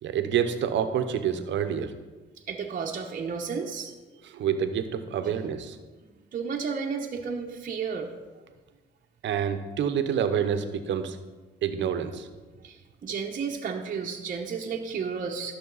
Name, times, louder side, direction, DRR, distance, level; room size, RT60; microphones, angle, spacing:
voice 1, 0.0-1.9 4.2-5.8 9.2-11.2 11.6-12.3, right 8 dB, 70° right, 9 dB, 0.8 m, -27 dB
voice 2, 2.5-3.9 5.2-5.3 6.0-8.1 12.6-15.5, right 5 dB, 45° right, 1 dB, 0.9 m, -33 dB
12.5 x 6.4 x 4.0 m, 1.3 s
cardioid pair, 90°, 20 cm